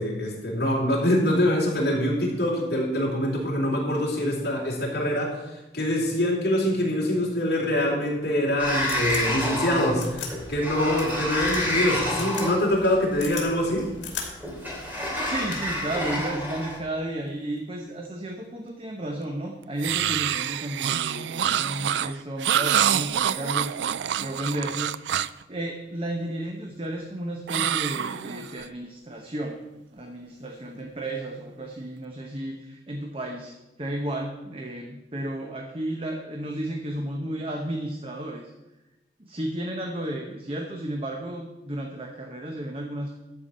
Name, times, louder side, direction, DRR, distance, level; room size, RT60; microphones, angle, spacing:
voice 1, 0.0-13.9, left 1 dB, 60° left, -3 dB, 3.9 m, -24 dB
sound 1, 8.2-8.3 8.8-9.2 10.0-10.3 10.9-11.1 11.5-11.6 12.1-12.5 12.8-13.5 14.0-14.3 14.8-14.9 15.3-15.8 17.0-17.3, left 7 dB, 80° left, 2.7 m, -36 dB
Sliding door, 8.6-16.8, left 1 dB, 10° right, 2.7 m, -29 dB
voice 2, 15.2-23.9 24.2-29.6 29.9-38.5 39.2-43.2, right 1 dB, 30° right, 2 dB, 0.9 m, -33 dB
sound 2, 19.8-25.4 27.5-28.7, right 9 dB, 70° right, 0.3 m, -26 dB
13.0 x 4.8 x 8.6 m, 1.0 s
head